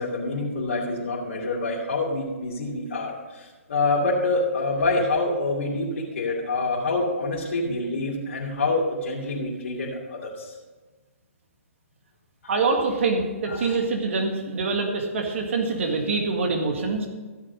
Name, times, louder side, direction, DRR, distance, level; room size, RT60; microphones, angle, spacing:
voice 1, 0.0-10.5 13.5-13.8, left 2 dB, 65° left, -6 dB, 2.6 m, -26 dB
voice 2, 12.5-17.1, right 4 dB, 60° right, 3 dB, 1.9 m, -25 dB
14.5 x 7.4 x 5.2 m, 1.3 s
figure-of-eight pair, 135°, 8 cm